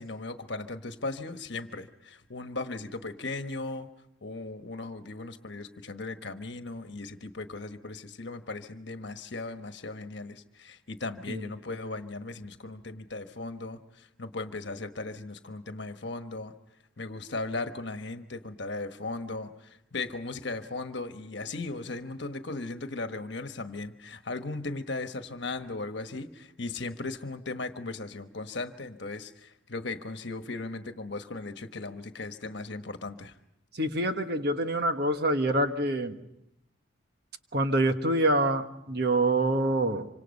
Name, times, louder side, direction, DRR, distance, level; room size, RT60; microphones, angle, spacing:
voice 1, 0.0-3.9 4.2-16.5 17.0-33.3, left 3 dB, 60° left, 8 dB, 1.2 m, -37 dB
voice 2, 33.7-36.2 37.5-40.1, right 1 dB, 50° right, 7 dB, 1.4 m, -26 dB
26.5 x 25.5 x 5.4 m, 0.84 s
head